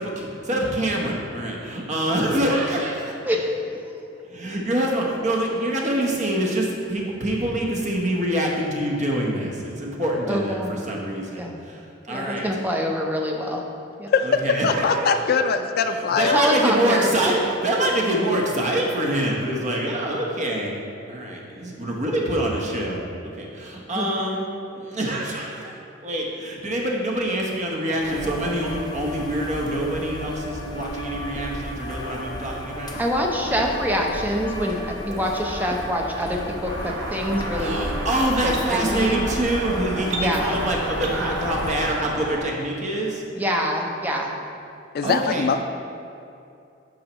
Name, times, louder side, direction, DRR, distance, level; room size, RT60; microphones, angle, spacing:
voice 1, 0.0-3.1 4.3-11.4 12.1-12.5 14.2-15.4 16.1-20.7 21.1-23.0 23.4-24.4 24.7-25.7 26.0-33.0 37.5-43.2 45.0-45.5, right 1 dB, 40° right, -1 dB, 1.0 m, -25 dB
voice 2, 3.3-3.6 10.3-10.8 11.4-11.6 12.1-13.7 14.0-14.1 16.3-17.1 23.9-24.1 32.9-37.8 38.4-39.2 40.2-40.6 43.4-44.4, equal, 10° right, 0 dB, 0.7 m, -25 dB
voice 3, 14.1-16.6 44.9-45.7, left 5 dB, 55° left, 8 dB, 0.3 m, -22 dB
sound 1, 28.0-41.9, equal, 20° left, 0.7 m, -33 dB
sound 2, 36.7-42.4, right 2 dB, 70° right, 0.8 m, -32 dB
8.8 x 5.5 x 3.0 m, 2.6 s
head